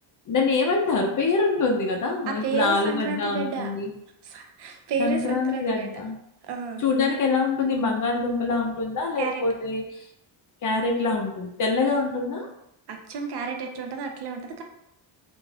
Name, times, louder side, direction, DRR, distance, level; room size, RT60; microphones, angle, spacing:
voice 1, 0.3-3.9 5.0-6.2 6.8-10.1 10.6-12.5, left 3 dB, 40° left, 2 dB, 0.5 m, -25 dB
voice 2, 2.3-3.7 4.2-6.0 6.4-6.8 9.2-9.4 12.9-14.6, right 5 dB, 55° right, 3 dB, 0.6 m, -31 dB
2.5 x 2.4 x 3.2 m, 0.79 s
cardioid pair, 115°, 47 cm